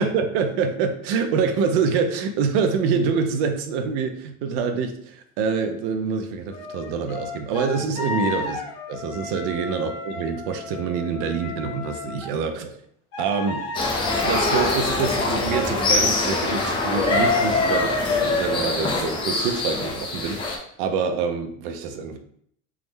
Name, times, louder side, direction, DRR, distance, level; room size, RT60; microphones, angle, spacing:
voice 1, 0.0-8.6 8.9-12.8 13.2-13.7 14.2-22.2, right 5 dB, 70° right, 7 dB, 0.5 m, -26 dB
sound 1, 6.5-12.3 13.1-15.4 16.0-16.6, left 4 dB, 85° left, 1.1 m, -35 dB
sound 2, 13.7-20.6, left 3 dB, 20° left, 0.3 m, -23 dB
3.5 x 2.0 x 3.2 m, 0.66 s
cardioid pair, 165°, 29 cm